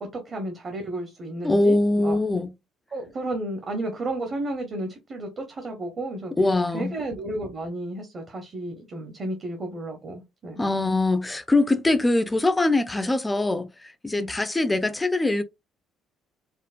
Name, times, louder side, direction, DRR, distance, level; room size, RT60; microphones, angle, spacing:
voice 1, 0.0-2.2 2.9-6.3 6.7-10.6 14.2-14.3, right 1 dB, 30° right, 0.7 m, -32 dB
voice 2, 1.4-2.5 6.4-7.0 10.6-15.4, left 2 dB, 10° left, 0.4 m, -23 dB
4.3 x 2.1 x 2.4 m
cardioid pair, 150°, 0 cm